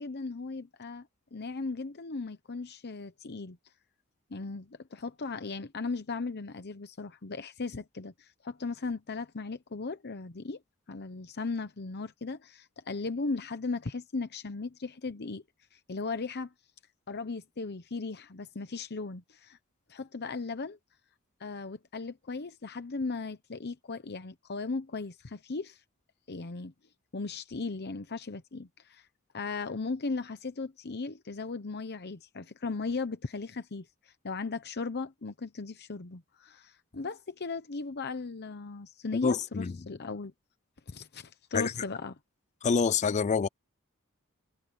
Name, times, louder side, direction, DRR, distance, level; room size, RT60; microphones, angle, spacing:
voice 1, 0.0-3.6 4.3-10.6 10.9-15.4 15.7-16.5 17.1-19.6 19.9-20.8 21.4-25.8 26.3-26.7 27.1-29.1 29.3-40.3 40.9-42.2, left 3 dB, 50° left, 0.9 m, -37 dB
voice 2, 39.2-39.7 41.5-41.7 42.6-43.5, left 5 dB, 35° left, 0.4 m, -26 dB
head